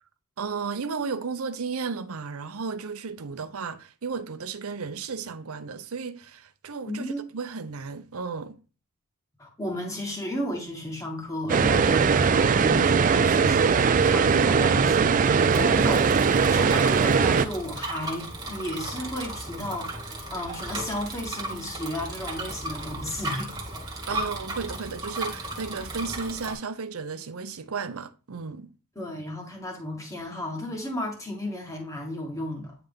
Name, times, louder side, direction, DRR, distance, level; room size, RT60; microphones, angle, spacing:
voice 1, 0.4-8.6 24.1-28.7, right 5 dB, 70° right, 0.6 m, -34 dB
voice 2, 6.8-7.2 9.4-23.5 29.0-32.7, left 1 dB, 15° left, 1.8 m, -34 dB
sound 1, 11.5-17.5, right 5 dB, 35° right, 0.3 m, -20 dB
Bicycle, 14.8-26.5, right 2 dB, 20° right, 1.6 m, -36 dB
9.1 x 3.3 x 3.6 m
head